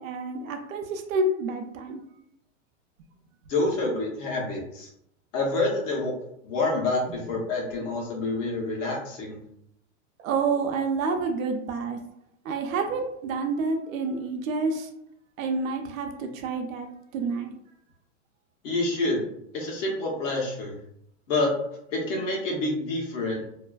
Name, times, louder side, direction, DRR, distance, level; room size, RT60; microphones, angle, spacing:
voice 1, 0.0-2.0 10.2-12.0 12.4-14.9 15.4-17.5, right 3 dB, 90° right, 4 dB, 0.6 m, -28 dB
voice 2, 3.5-4.9 5.3-6.1 6.4-9.4 18.6-19.2 19.5-20.8 21.3-21.5 21.9-23.4, left 2 dB, 70° left, -3 dB, 1.1 m, -27 dB
2.7 x 2.4 x 2.3 m, 0.74 s
supercardioid pair, 145°, 39 cm